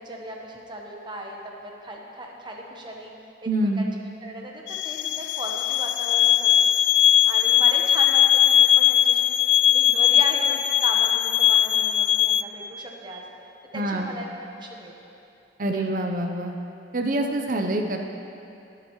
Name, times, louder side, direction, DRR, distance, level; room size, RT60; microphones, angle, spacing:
voice 1, 0.0-3.1 3.4-3.9 4.2-6.7 7.2-9.4 9.7-13.2 13.7-14.3 14.5-14.9 15.7-15.9, right 1 dB, 25° right, -1 dB, 1.2 m, -37 dB
voice 2, 3.5-3.8 13.7-14.1 15.6-16.6 16.9-18.0, right 1 dB, 45° right, 4 dB, 0.8 m, -25 dB
sound 1, 4.7-12.4, left 11 dB, 85° left, 0.3 m, -19 dB
22.5 x 7.8 x 3.2 m, 2.7 s
head